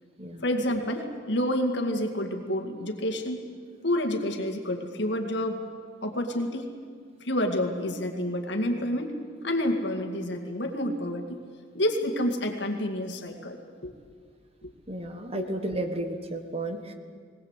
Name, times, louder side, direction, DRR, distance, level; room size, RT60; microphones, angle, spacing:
voice 1, 0.4-3.4 3.8-5.6 6.0-6.7 7.2-9.1 9.4-11.4 11.7-13.6 13.8-13.9 14.6-14.7 15.3-15.5, left 1 dB, 55° left, 4 dB, 2.2 m, -29 dB
voice 2, 14.9-16.9, right 1 dB, 30° right, 6 dB, 1.4 m, -33 dB
20.0 x 19.5 x 8.2 m, 2.1 s
head